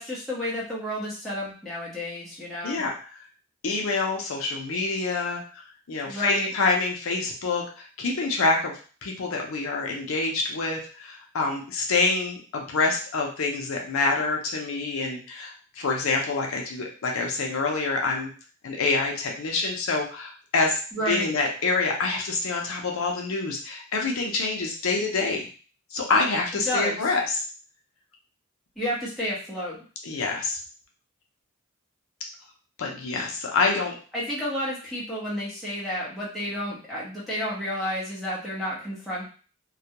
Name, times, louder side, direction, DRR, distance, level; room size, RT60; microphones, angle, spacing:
voice 1, 0.0-2.8 6.1-6.5 20.9-21.3 26.7-27.0 28.8-29.8 34.1-39.2, equal, ahead, -8 dB, 0.8 m, -31 dB
voice 2, 2.6-3.0 3.6-5.6 5.9-8.7 9.0-18.3 18.6-20.8 21.1-25.5 25.9-27.4 30.0-30.6 32.8-33.9, left 3 dB, 70° left, 1 dB, 0.5 m, -26 dB
2.3 x 2.2 x 2.8 m, 0.39 s
head